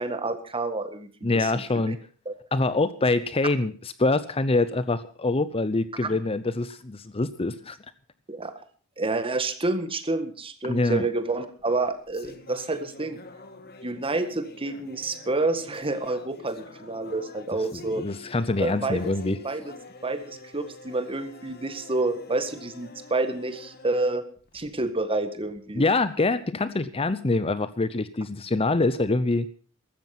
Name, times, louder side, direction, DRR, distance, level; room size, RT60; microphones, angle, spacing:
voice 1, 0.0-1.5 1.9-2.0 2.2-2.3 6.0-6.2 8.3-8.5 9.0-13.2 13.8-18.0 18.6-19.0 19.4-19.7 20.0-24.2 24.5-25.8, right 2 dB, 25° right, 10 dB, 1.7 m, -29 dB
voice 2, 1.2-2.0 2.5-7.8 10.6-11.1 17.7-19.4 25.7-29.5, left 2 dB, 25° left, 14 dB, 0.7 m, -25 dB
sound 1, 11.6-25.0, left 3 dB, 50° left, 1.9 m, -47 dB
15.0 x 13.5 x 5.9 m, 0.41 s
head